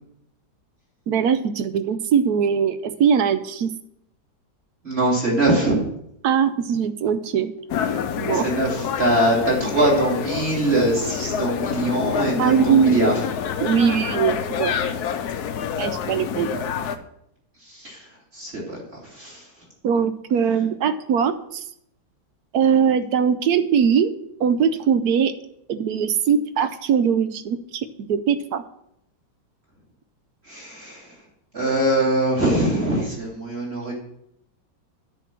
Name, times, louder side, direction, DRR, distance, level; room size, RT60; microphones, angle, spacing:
voice 1, 1.1-3.7 6.2-7.5 8.2-8.5 12.4-13.1 13.6-14.8 15.8-16.6 19.8-21.6 22.5-24.1 24.4-25.3 25.7-28.6, right 7 dB, 70° right, 11 dB, 1.0 m, -21 dB
voice 2, 4.8-5.8 8.4-13.1 17.8-18.0 18.4-18.8 19.2-19.4 30.5-31.0 31.5-33.9, right 1 dB, 35° right, -4 dB, 3.0 m, -22 dB
sound 1, 7.7-17.0, left 7 dB, 65° left, 1.2 m, -27 dB
9.9 x 4.6 x 7.4 m, 0.75 s
omnidirectional pair, 2.0 m